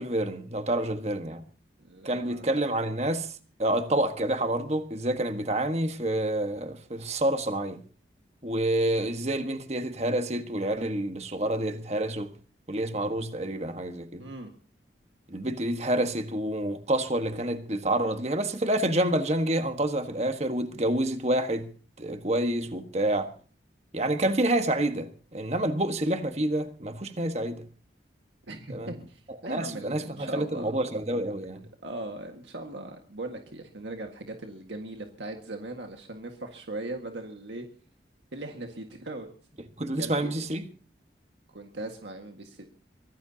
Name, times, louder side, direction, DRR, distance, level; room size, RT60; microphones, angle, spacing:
voice 1, 0.0-1.4 2.0-3.3 3.6-7.8 8.4-12.3 12.7-14.3 15.3-21.7 22.0-23.3 23.9-27.6 28.7-28.9 29.4-31.6 39.8-40.7, right 1 dB, 35° right, 1.4 m, -28 dB
voice 2, 1.8-2.5 14.2-14.5 28.5-30.8 31.8-37.7 38.3-39.3 40.0-40.3 41.5-42.7, right 2 dB, 85° right, 1.8 m, -39 dB
24.0 x 17.5 x 2.9 m
head